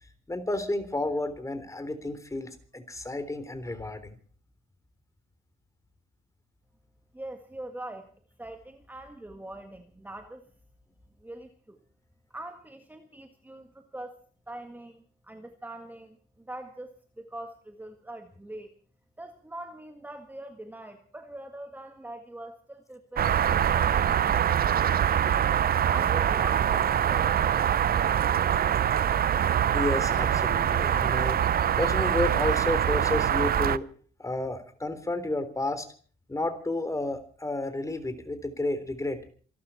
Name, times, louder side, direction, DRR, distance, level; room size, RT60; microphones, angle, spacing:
voice 1, 0.3-4.2 29.7-31.4 31.8-33.9 34.2-35.9 36.3-39.2, left 2 dB, 15° left, 10 dB, 3.6 m, -31 dB
voice 2, 7.1-8.1 8.4-10.4 11.2-11.8 12.3-14.2 14.5-18.7 19.2-25.4 25.7-28.1, right 1 dB, 10° right, 6 dB, 1.7 m, -43 dB
sound 1, 23.2-33.8, right 9 dB, 50° right, 0.7 m, -24 dB
27.0 x 12.5 x 4.3 m, 0.43 s
cardioid pair, 90°, 20 cm